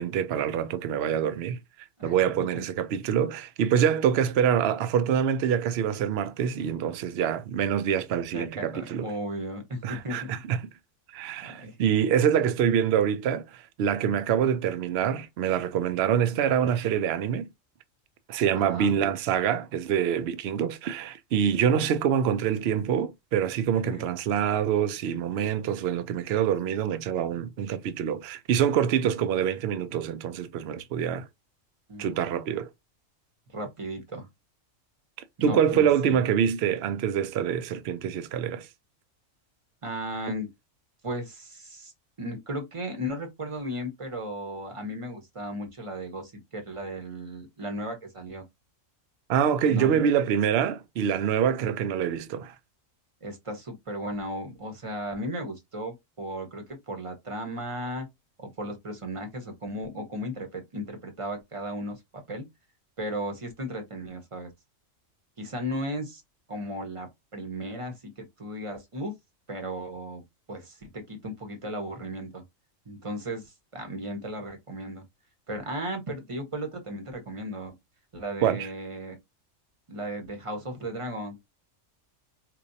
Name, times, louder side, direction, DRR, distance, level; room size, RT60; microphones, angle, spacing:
voice 1, 0.0-1.6 2.0-9.1 9.8-10.6 11.1-17.5 18.3-31.3 32.0-32.7 35.4-38.7 49.3-52.5 78.4-78.7, right 8 dB, 60° right, 0.7 m, -25 dB
voice 2, 8.3-10.4 11.4-11.8 18.5-18.9 23.8-24.0 31.9-32.1 33.5-34.3 35.4-36.2 39.8-40.5 41.0-41.9 42.2-48.4 49.7-50.1 53.2-58.1 58.4-62.5 63.0-64.5 65.4-66.2 66.5-69.1 69.5-70.2 70.5-72.4 72.9-75.0 75.5-77.7 78.1-79.2 79.9-81.3, equal, 25° right, 1.0 m, -35 dB
4.5 x 2.6 x 2.6 m
omnidirectional pair, 1.4 m